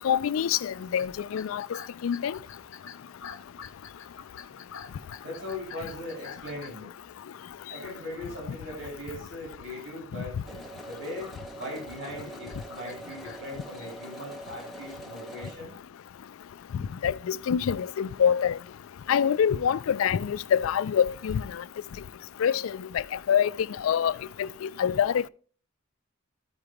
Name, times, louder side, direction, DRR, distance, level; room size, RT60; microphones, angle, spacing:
voice 1, 0.0-1.7 2.0-2.4 16.7-18.5 19.1-21.6 22.4-23.5 23.8-25.3, left 8 dB, 90° left, 0.4 m, -26 dB
sound 1, 0.8-7.4 8.0-8.4 8.8-9.1 9.5-9.7 10.3-13.5, left 7 dB, 70° left, 0.9 m, -47 dB
voice 2, 5.2-6.9 7.7-10.6 10.8-15.7, left 1 dB, 60° right, 3.0 m, -39 dB
sound 2, 10.5-15.5, right 2 dB, ahead, 0.7 m, -44 dB
13.5 x 5.0 x 3.0 m
head